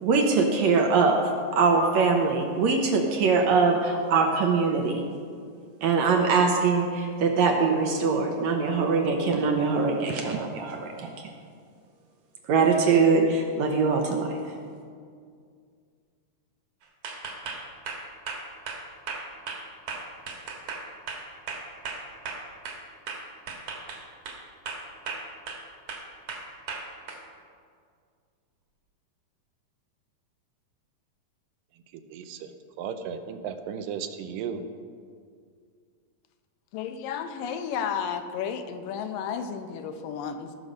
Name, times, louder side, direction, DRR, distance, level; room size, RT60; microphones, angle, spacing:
voice 1, 0.0-5.0 5.8-11.1 12.5-14.4, right 4 dB, 70° right, 3 dB, 1.8 m, -23 dB
sound 1, 17.0-22.8 23.1-24.4 24.7-25.6 25.9-27.2, right 4 dB, 55° right, 2.3 m, -36 dB
voice 2, 31.7-34.6, right 7 dB, 85° right, 8 dB, 2.3 m, -36 dB
voice 3, 36.7-40.6, left 7 dB, 85° left, 7 dB, 2.4 m, -32 dB
18.0 x 6.5 x 5.2 m, 2.1 s
omnidirectional pair, 3.9 m